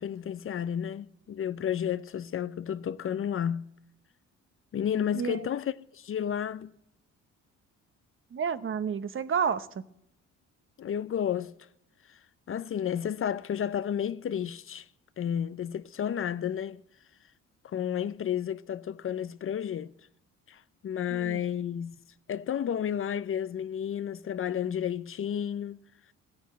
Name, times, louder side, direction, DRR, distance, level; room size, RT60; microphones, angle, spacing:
voice 1, 0.0-3.7 4.7-6.7 10.8-11.5 12.1-12.2 12.5-14.9 15.2-16.8 17.6-19.9 20.5-21.9 22.3-25.8, left 9 dB, 45° left, 0.6 m, -32 dB
voice 2, 5.1-5.5 8.3-9.8 21.1-21.4, right 6 dB, 45° right, 0.9 m, -30 dB
14.0 x 8.6 x 7.6 m
cardioid pair, 90°, 30 cm